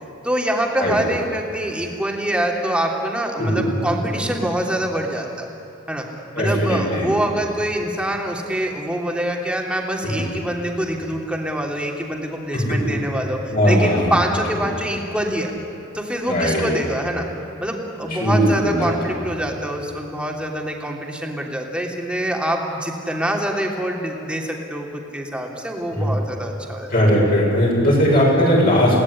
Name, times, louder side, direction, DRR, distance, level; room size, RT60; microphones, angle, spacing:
voice 1, 0.2-5.5 5.9-6.1 6.4-15.5 15.9-17.2 17.6-26.9, right 1 dB, 5° right, 0 dB, 3.1 m, -25 dB
voice 2, 3.4-3.7 6.4-7.1 10.0-10.2 12.5-12.9 13.5-14.1 16.3-16.7 18.2-18.9 25.9-26.1 26.9-29.0, equal, 50° left, -4 dB, 7.2 m, -18 dB
30.0 x 18.0 x 9.9 m, 3.0 s
head